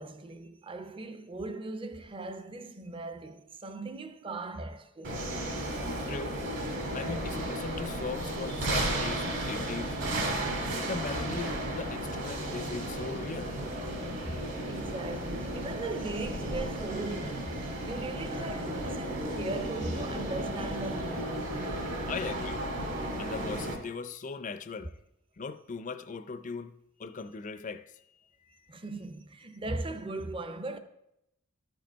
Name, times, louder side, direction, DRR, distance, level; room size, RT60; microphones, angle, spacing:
voice 1, 0.0-5.3 14.2-14.4 14.7-17.6 17.9-21.6 28.7-30.8, right 2 dB, 25° right, 0.5 m, -38 dB
sound 1, 5.0-23.7, right 1 dB, 55° right, 1.9 m, -34 dB
voice 2, 6.1-6.4 6.9-9.9 10.9-13.6 22.1-22.6 23.2-24.9 25.4-26.7 27.0-27.9, left 4 dB, 35° left, 0.4 m, -39 dB
12.5 x 5.1 x 4.5 m
head